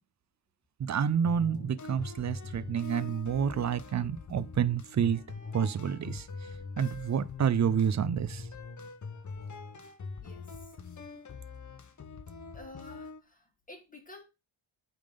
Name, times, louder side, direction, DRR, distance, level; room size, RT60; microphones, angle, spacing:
voice 1, 0.8-5.2 5.5-6.5 6.8-8.5, right 7 dB, 40° right, 0.4 m, -29 dB
sound 1, 1.2-13.2, left 4 dB, 40° left, 0.8 m, -43 dB
voice 2, 10.2-10.8 12.5-14.2, left 2 dB, 15° left, 1.8 m, -50 dB
8.6 x 3.7 x 5.1 m
wide cardioid pair, 140°, 48 cm